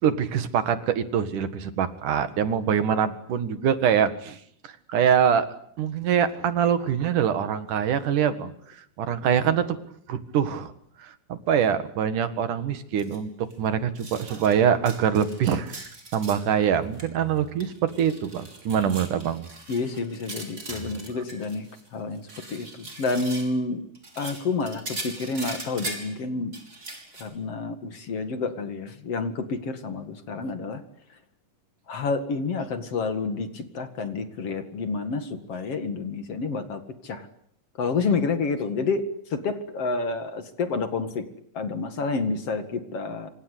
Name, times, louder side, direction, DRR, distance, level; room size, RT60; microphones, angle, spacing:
voice 1, 0.0-5.5 5.8-9.8 10.1-10.7 11.0-19.4 20.7-20.8, right 8 dB, 75° right, 12 dB, 3.3 m, -24 dB
sound 1, 13.0-13.2 13.5-13.6 14.0-14.6 14.9-16.4 16.7-17.1 17.4-21.9 22.1-23.5 23.9-26.1 26.5-27.2, right 2 dB, 25° right, 6.1 m, -40 dB
voice 2, 19.7-23.8 24.2-26.5 27.2-30.8 31.9-37.3 37.8-39.1 39.3-41.3 41.5-43.3, left 4 dB, 50° left, 10 dB, 2.9 m, -29 dB
27.0 x 26.0 x 8.3 m, 0.65 s
omnidirectional pair, 3.7 m